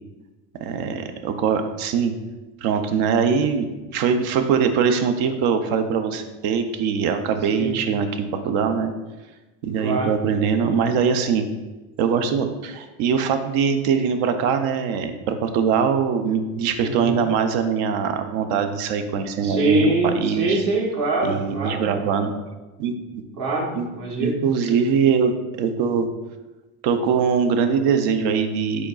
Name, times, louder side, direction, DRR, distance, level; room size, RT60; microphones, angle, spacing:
voice 1, 0.6-2.1 2.6-3.7 3.9-8.9 9.6-11.5 12.0-20.6 21.2-22.3 22.8-23.2 23.8-23.9 24.2-26.1 26.8-28.9, right 6 dB, 65° right, 7 dB, 0.6 m, -22 dB
voice 2, 9.8-10.2 16.8-17.2 19.4-22.2 23.4-24.4 24.7-24.8, right 2 dB, 45° right, -1 dB, 1.1 m, -25 dB
5.0 x 4.0 x 2.4 m, 1.1 s
supercardioid pair, 125°, 45 cm